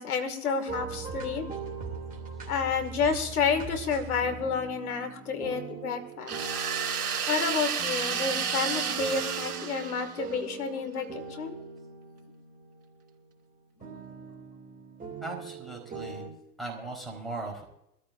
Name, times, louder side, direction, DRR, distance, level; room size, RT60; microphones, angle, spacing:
voice 1, 0.0-1.4 2.5-6.5 7.3-11.6, left 5 dB, 70° left, 7 dB, 2.3 m, -30 dB
sound 1, 0.7-13.3 13.8-16.3, right 5 dB, 20° right, 2.7 m, -41 dB
sound 2, 6.3-10.4, right 7 dB, 75° right, 3.4 m, -31 dB
voice 2, 15.2-16.3 16.6-17.6, right 2 dB, ahead, 0 dB, 4.2 m, -38 dB
23.5 x 14.0 x 2.6 m, 0.80 s
hypercardioid pair, 105°, 45 cm